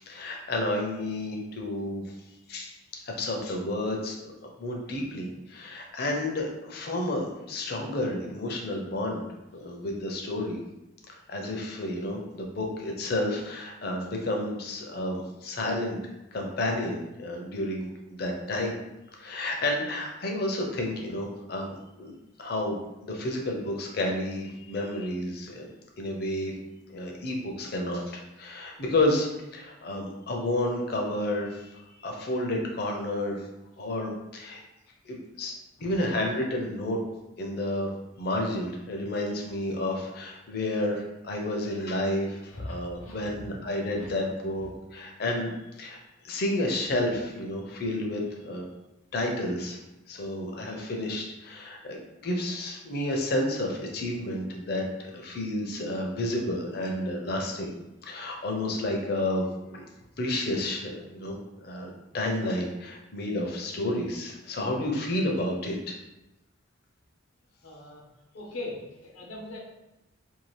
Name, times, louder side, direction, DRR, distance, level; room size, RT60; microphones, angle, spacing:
voice 1, 0.1-2.0 2.5-2.7 3.0-9.3 9.5-10.6 11.1-16.0 16.3-18.8 19.2-22.1 22.4-25.7 26.0-26.5 26.9-33.4 33.8-34.6 35.0-35.5 35.8-37.0 37.4-37.9 38.2-45.5 45.8-46.0 46.2-48.6 49.1-49.8 50.1-57.7 58.0-59.8 60.2-66.0, left 1 dB, 50° left, 1 dB, 0.5 m, -31 dB
voice 2, 43.0-43.6 43.9-44.2 67.6-68.0 68.3-69.6, left 2 dB, 90° left, -2 dB, 0.8 m, -40 dB
2.7 x 2.3 x 3.1 m, 0.95 s
head